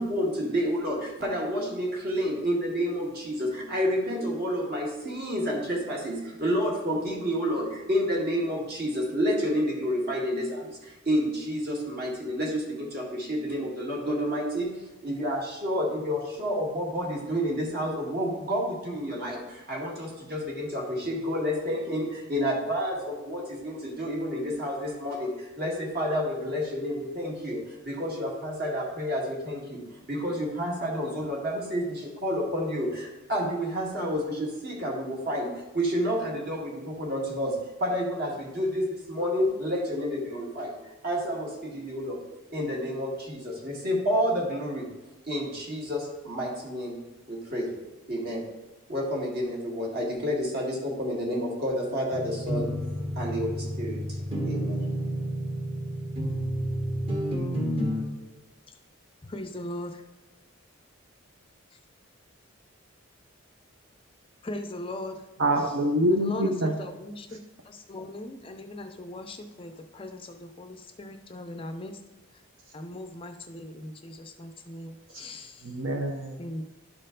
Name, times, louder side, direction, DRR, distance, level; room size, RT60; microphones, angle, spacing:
voice 1, 0.0-14.7 15.0-35.5 35.7-42.2 42.5-44.9 45.2-47.0 47.3-47.7 48.1-48.4 48.9-52.7 53.2-54.2 54.4-54.9, equal, 45° right, -2 dB, 2.0 m, -29 dB
sound 1, 52.1-58.0, equal, 25° right, 1.2 m, -30 dB
voice 2, 59.2-60.0 64.4-65.2 66.2-67.4 67.6-72.0 72.7-75.7 76.4-76.6, left 1 dB, 25° left, 6 dB, 0.4 m, -39 dB
voice 3, 65.4-66.7 75.1-75.2 75.6-76.4, equal, 65° right, 2 dB, 0.7 m, -25 dB
11.5 x 4.4 x 3.8 m, 1.1 s
head